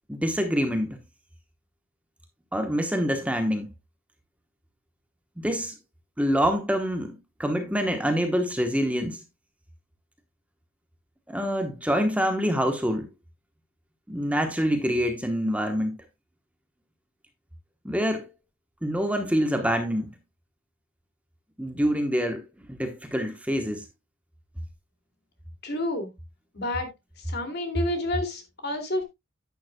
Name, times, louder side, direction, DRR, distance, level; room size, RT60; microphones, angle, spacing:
voice 1, 0.1-1.0 2.5-3.7 5.4-5.7 6.2-9.2 11.3-13.1 14.1-15.9 17.8-18.3 18.8-20.1 21.6-23.8, equal, 5° right, 1.1 m, -26 dB
voice 2, 25.6-26.1 26.5-26.9 27.3-29.0, left 1 dB, 50° left, 2.6 m, -29 dB
11.0 x 9.4 x 2.3 m
head